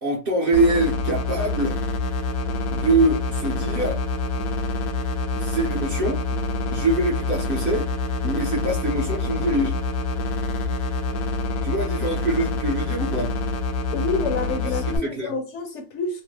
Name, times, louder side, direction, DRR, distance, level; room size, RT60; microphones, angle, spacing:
voice 1, 0.0-1.8 2.7-4.0 5.4-6.2 6.7-7.9 8.2-9.8 11.6-13.3 14.7-15.3, right 2 dB, 50° right, 0.7 m, -24 dB
sound 1, 0.5-15.0, left 2 dB, 80° left, 1.1 m, -26 dB
voice 2, 13.9-16.2, left 4 dB, 65° left, 0.8 m, -28 dB
2.9 x 2.0 x 3.1 m
omnidirectional pair, 1.5 m